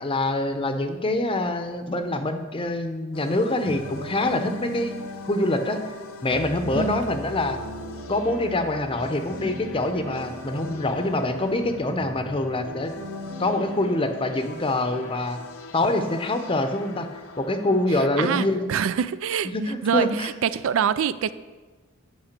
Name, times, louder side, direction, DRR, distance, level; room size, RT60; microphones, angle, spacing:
voice 1, 0.0-5.0 5.2-5.8 6.2-7.6 8.1-12.9 13.4-15.4 15.7-17.1 17.4-18.7 19.5-20.3, left 2 dB, 25° left, 7 dB, 0.7 m, -25 dB
sound 1, 3.1-18.3, left 3 dB, 80° left, 0.8 m, -43 dB
sound 2, 3.6-15.3, equal, 45° right, 2.3 m, -39 dB
voice 2, 18.0-19.5 19.8-21.3, right 8 dB, 65° right, 15 dB, 0.3 m, -25 dB
8.8 x 5.5 x 6.6 m, 1.3 s
head